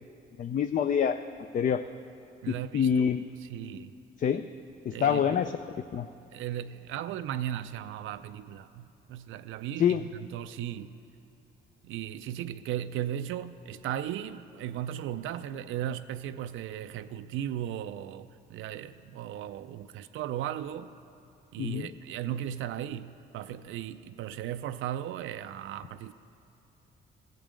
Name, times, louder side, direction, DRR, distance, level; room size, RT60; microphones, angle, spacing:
voice 1, 0.4-1.2 1.5-1.8 2.5-3.2 4.2-4.4 4.8-5.6 5.9-6.1 9.8-10.0 21.6-21.9, left 8 dB, 45° left, 9 dB, 0.4 m, -26 dB
voice 2, 2.4-3.1 3.4-3.9 4.9-5.2 6.3-11.0 11.8-20.9 21.5-26.1, right 11 dB, 80° right, 11 dB, 0.4 m, -36 dB
15.0 x 5.2 x 7.5 m, 2.8 s
cardioid pair, 90°, 20 cm